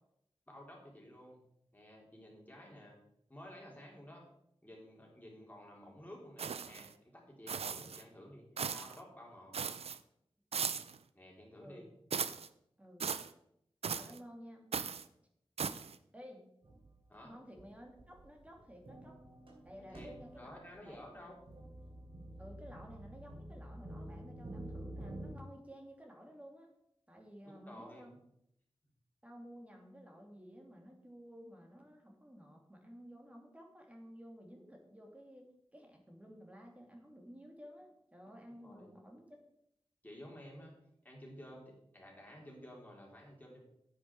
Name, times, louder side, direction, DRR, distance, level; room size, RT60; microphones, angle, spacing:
voice 1, 0.5-1.4 1.7-3.0 3.3-4.3 4.6-9.6 11.1-11.9 17.1-17.3 19.8-20.1 20.4-21.3 27.4-28.2 38.6-38.9 40.0-40.7 41.0-43.6, left 1 dB, 15° left, -2 dB, 3.9 m, -53 dB
sound 1, 6.4-6.9 7.5-8.0 8.6-9.0 9.5-10.0 10.5-11.0 12.1-12.5 13.0-13.3 13.8-14.2 14.7-15.1 15.6-16.0, right 6 dB, 80° right, 0.5 m, -38 dB
voice 2, 12.8-13.2 13.9-14.7 16.1-16.5 17.2-19.2 19.6-21.1 22.4-26.7 27.1-28.1 29.2-39.3, equal, 15° right, 1 dB, 2.6 m, -54 dB
sound 2, 16.6-17.0 17.6-17.7 18.0-25.3, right 1 dB, 60° right, 3.0 m, -49 dB
9.8 x 8.5 x 4.7 m, 0.74 s
wide cardioid pair, 75°, 10 cm